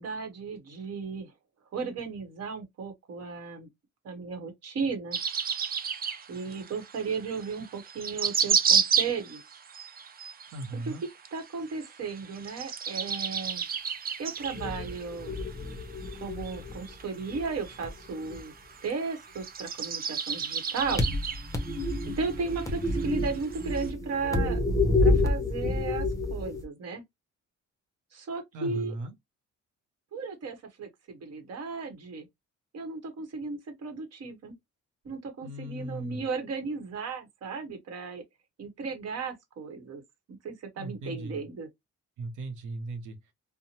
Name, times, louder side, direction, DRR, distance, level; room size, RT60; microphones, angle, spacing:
voice 1, 0.0-1.3 1.7-3.7 4.0-5.2 6.3-9.4 10.9-11.0 11.3-13.6 14.2-15.3 16.2-18.5 18.8-21.1 22.2-24.6 25.0-27.0 28.1-28.9 30.1-32.3 32.7-34.5 35.0-38.2 38.6-40.0 40.3-41.7, right 4 dB, 55° right, 1.0 m, -35 dB
sound 1, 5.1-23.9, right 7 dB, 30° right, 0.4 m, -32 dB
voice 2, 10.5-11.0 28.5-29.1 35.4-36.2 40.8-41.4 42.2-43.2, right 2 dB, 75° right, 0.7 m, -37 dB
sound 2, 14.4-17.0 17.3-18.4 20.8-26.6, left 2 dB, 10° left, 0.7 m, -29 dB
2.7 x 2.1 x 2.8 m
cardioid pair, 90°, 30 cm